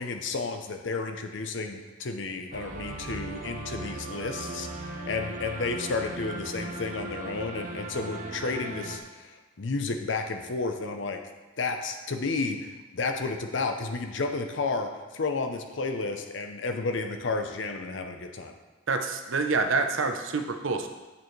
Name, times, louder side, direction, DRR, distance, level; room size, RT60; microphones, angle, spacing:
voice 1, 0.0-11.2 11.6-18.5, left 3 dB, 65° left, 5 dB, 0.6 m, -32 dB
sound 1, 2.5-9.0, right 2 dB, 40° right, 0.7 m, -38 dB
voice 2, 18.9-20.9, right 4 dB, 85° right, 6 dB, 0.7 m, -27 dB
8.2 x 6.7 x 3.2 m, 1.2 s
head